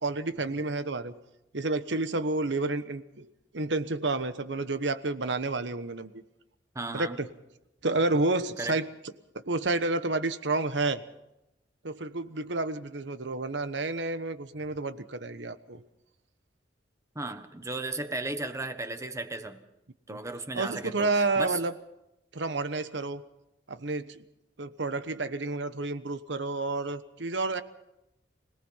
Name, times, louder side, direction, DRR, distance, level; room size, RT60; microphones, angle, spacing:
voice 1, 0.0-1.1 1.5-3.3 3.5-6.2 6.9-7.3 7.8-8.9 9.3-11.0 11.8-15.8 20.1-20.2 20.5-21.7 22.3-23.2 23.7-24.2 24.6-27.6, right 2 dB, 70° right, 11 dB, 1.2 m, -30 dB
voice 2, 6.7-7.3 8.6-8.8 17.1-19.6 20.1-21.6, right 2 dB, 15° right, 9 dB, 1.3 m, -35 dB
25.5 x 18.5 x 5.7 m, 0.90 s
head